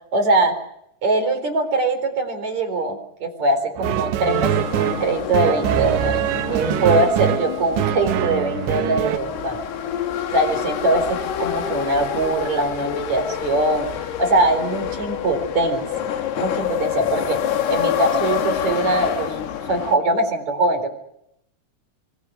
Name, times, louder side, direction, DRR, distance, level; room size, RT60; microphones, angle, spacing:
voice 1, 0.1-0.5 1.0-6.2 6.5-9.6 10.3-13.9 14.2-17.4 17.7-19.4 19.7-20.9, right 2 dB, 40° right, 7 dB, 5.1 m, -22 dB
sound 1, 3.8-9.2, right 13 dB, 90° right, 3.4 m, -23 dB
sound 2, 4.3-20.0, left 9 dB, 70° left, 3.7 m, -27 dB
26.5 x 23.0 x 6.4 m, 0.77 s
omnidirectional pair, 5.0 m